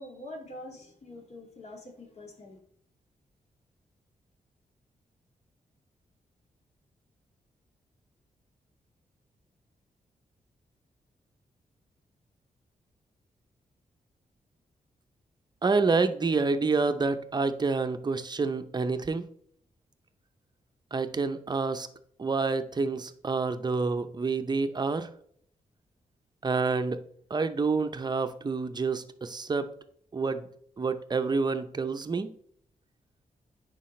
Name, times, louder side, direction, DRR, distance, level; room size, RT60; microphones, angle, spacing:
voice 1, 0.0-2.6, left 1 dB, 50° left, 1 dB, 2.1 m, -45 dB
voice 2, 15.6-19.2 20.9-21.9 22.2-25.1 26.4-27.0 27.3-29.7 30.1-30.5 30.8-32.3, right 4 dB, 30° right, 9 dB, 0.7 m, -28 dB
10.0 x 4.8 x 3.2 m, 0.64 s
cardioid pair, 95°, 14 cm